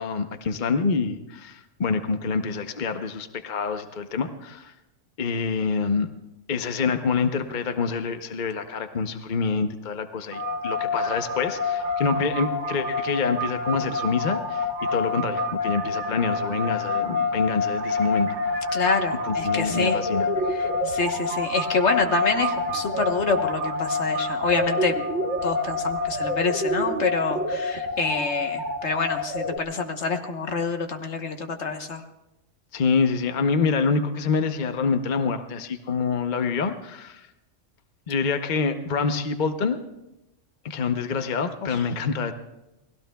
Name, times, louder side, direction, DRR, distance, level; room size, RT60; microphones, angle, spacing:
voice 1, 0.0-4.7 5.2-6.1 6.5-18.3 19.2-20.3 32.7-37.3 38.1-39.8 40.6-42.3, left 5 dB, 45° left, 7 dB, 0.9 m, -26 dB
sound 1, 10.3-29.6, left 2 dB, 65° right, 2.0 m, -27 dB
voice 2, 18.7-20.0 20.5-25.0 25.4-32.0 41.6-41.8, left 4 dB, 65° left, 5 dB, 1.5 m, -27 dB
29.5 x 19.5 x 2.3 m, 0.94 s
omnidirectional pair, 1.3 m